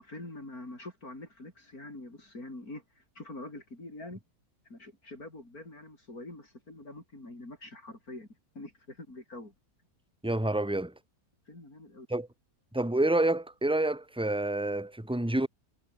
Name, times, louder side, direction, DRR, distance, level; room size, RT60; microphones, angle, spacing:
voice 1, 0.0-4.2 4.7-8.3 8.6-9.5 11.5-12.1, left 2 dB, 70° left, 7.3 m, -45 dB
voice 2, 10.2-10.9 12.1-12.3 12.7-15.5, right 1 dB, 5° right, 2.3 m, -28 dB
omnidirectional pair, 1.6 m